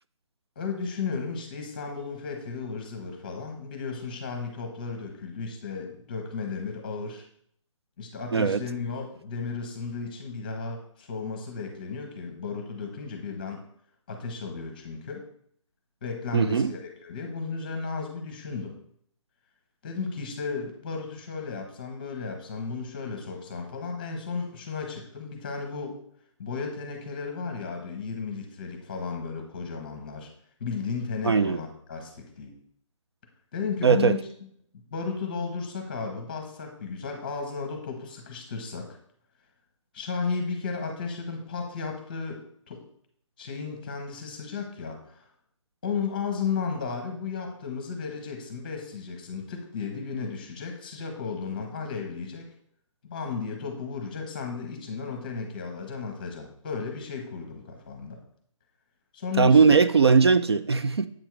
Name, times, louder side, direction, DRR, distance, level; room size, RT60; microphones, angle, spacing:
voice 1, 0.6-7.3 8.0-13.6 14.1-15.2 16.0-18.8 19.8-26.0 26.4-30.3 30.6-32.5 33.5-34.2 34.9-39.0 39.9-42.8 43.4-45.3 45.8-52.4 53.0-58.2 59.1-59.8, left 5 dB, 15° left, 1.0 m, -34 dB
voice 2, 8.3-8.6 16.3-16.7 31.2-31.6 33.8-34.2 59.4-61.1, right 5 dB, 50° right, 0.4 m, -19 dB
7.8 x 3.6 x 4.6 m
hypercardioid pair, 175°, 17 cm